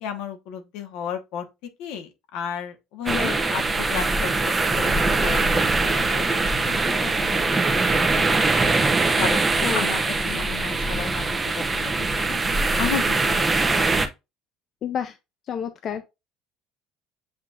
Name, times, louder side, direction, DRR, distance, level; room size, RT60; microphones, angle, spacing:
voice 1, 0.0-1.5 1.8-8.5 9.2-12.4 12.8-13.3 13.6-13.8, left 7 dB, 75° left, 1.1 m, -34 dB
voice 2, 3.1-3.4 9.6-9.8 14.8-15.2 15.5-16.1, left 8 dB, 45° left, 0.4 m, -29 dB
sound 1, 3.1-14.1, right 3 dB, 15° right, 0.7 m, -22 dB
7.6 x 2.8 x 2.4 m
cardioid pair, 135°, 0 cm